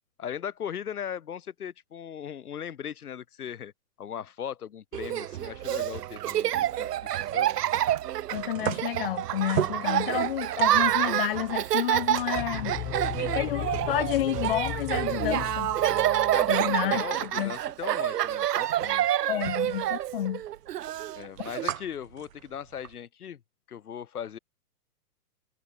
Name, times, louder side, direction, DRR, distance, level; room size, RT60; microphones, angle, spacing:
voice 1, 0.2-3.7 4.0-7.5 13.0-13.3 16.3-19.1 21.1-23.4 23.7-24.4, left 9 dB, 70° left, 3.6 m, -38 dB
Laughter, 4.9-21.7, right 12 dB, 90° right, 0.8 m, -28 dB
sound 1, 5.5-23.0, right 10 dB, 55° right, 2.2 m, -41 dB
voice 2, 8.3-12.8 13.4-15.7 16.5-17.5 19.3-20.4, left 12 dB, 35° left, 2.0 m, -30 dB
sound 2, 12.4-17.0, left 22 dB, 20° left, 3.8 m, -37 dB
hypercardioid pair, 175°, 47 cm